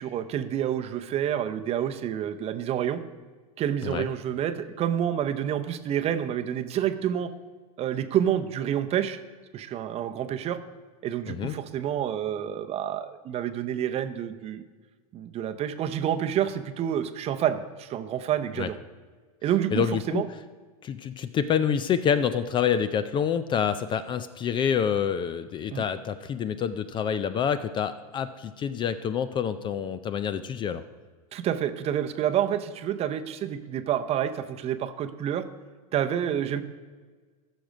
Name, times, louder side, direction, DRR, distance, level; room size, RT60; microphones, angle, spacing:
voice 1, 0.0-3.0 3.6-7.3 7.8-9.2 9.5-10.6 11.0-14.6 15.1-18.8 19.4-20.3 25.7-25.8 31.3-35.4 35.9-36.6, right 10 dB, 30° right, 10 dB, 0.7 m, -28 dB
voice 2, 11.3-11.6 18.6-18.7 19.7-20.2 20.8-30.8, left 8 dB, 25° left, 13 dB, 0.4 m, -27 dB
14.5 x 6.1 x 5.2 m, 1.4 s
hypercardioid pair, 115°, 19 cm